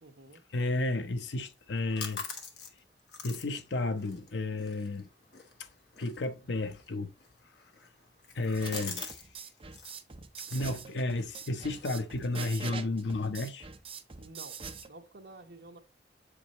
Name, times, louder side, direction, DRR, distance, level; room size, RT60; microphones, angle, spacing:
voice 1, 0.0-0.4 14.2-15.8, right 2 dB, 60° right, 1.0 m, -51 dB
voice 2, 0.5-2.2 3.2-5.1 6.0-7.1 8.3-9.1 10.5-13.7, left 2 dB, 80° left, 0.8 m, -32 dB
sound 1, 1.5-9.3 9.5-10.0 10.4-12.8, left 5 dB, 65° left, 1.2 m, -46 dB
sound 2, 8.5-14.9, right 5 dB, 30° right, 0.6 m, -43 dB
7.3 x 4.9 x 3.0 m
head